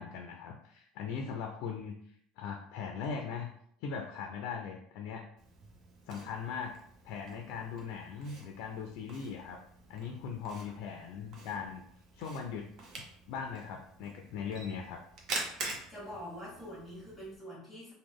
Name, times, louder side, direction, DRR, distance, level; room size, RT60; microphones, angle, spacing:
voice 1, 0.0-2.0 2.4-3.5 3.8-5.2 6.1-6.7 7.0-9.6 9.9-11.8 12.1-12.6 13.3-15.0, left 6 dB, 70° left, 3 dB, 0.4 m, -39 dB
Camera, 5.4-17.4, right 3 dB, 50° right, 0.8 m, -46 dB
voice 2, 15.9-17.9, equal, ahead, -7 dB, 1.3 m, -45 dB
3.0 x 2.1 x 3.5 m, 0.67 s
supercardioid pair, 125°, 0 cm